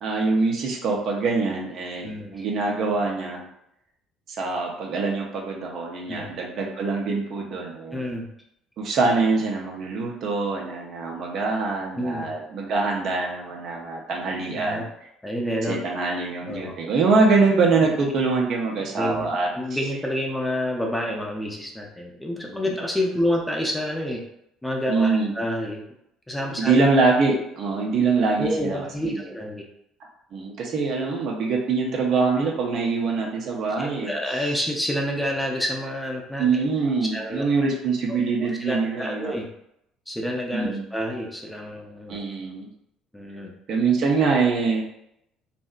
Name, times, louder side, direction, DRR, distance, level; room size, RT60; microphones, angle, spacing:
voice 1, 0.0-3.4 4.4-8.0 8.8-14.9 15.6-19.5 24.9-25.3 26.6-29.2 30.3-34.1 36.4-39.3 40.5-40.8 42.1-42.7 43.7-44.9, right 4 dB, 50° right, -1 dB, 0.5 m, -24 dB
voice 2, 2.0-2.4 6.1-6.3 7.9-8.3 11.9-12.3 14.5-14.9 15.2-15.8 16.5-16.7 19.0-19.3 19.5-24.2 24.6-25.8 26.3-26.7 28.4-29.6 33.8-36.7 37.1-37.5 38.1-38.2 38.5-39.5 40.1-42.2 43.1-43.5, equal, 5° left, 0 dB, 0.5 m, -28 dB
2.6 x 2.1 x 2.3 m, 0.78 s
figure-of-eight pair, 55°, 0 cm